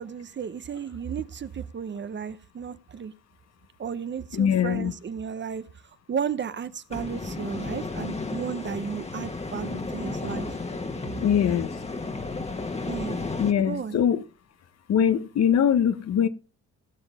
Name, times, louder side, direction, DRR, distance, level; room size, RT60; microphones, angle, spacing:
voice 1, 0.0-3.1 3.8-5.6 6.1-10.5 12.9-13.2 13.6-14.0, right 7 dB, 40° right, 0.8 m, -33 dB
voice 2, 4.3-4.9 11.2-11.7 13.4-14.2 14.9-16.3, left 8 dB, 60° left, 0.9 m, -22 dB
sound 1, 6.9-13.5, left 3 dB, 20° left, 1.4 m, -33 dB
16.5 x 7.1 x 3.4 m
cardioid pair, 90°, 30 cm